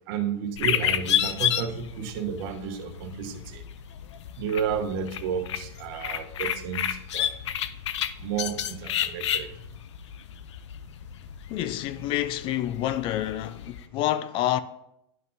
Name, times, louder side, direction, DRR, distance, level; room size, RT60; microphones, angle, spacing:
voice 1, 0.1-3.6 4.4-7.3 8.2-9.8, right 7 dB, 55° right, 1.0 m, -32 dB
sound 1, 0.6-13.9, left 10 dB, 90° left, 0.5 m, -31 dB
voice 2, 11.5-14.6, left 13 dB, 35° left, 0.4 m, -28 dB
11.0 x 5.6 x 2.7 m
supercardioid pair, 140°, 14 cm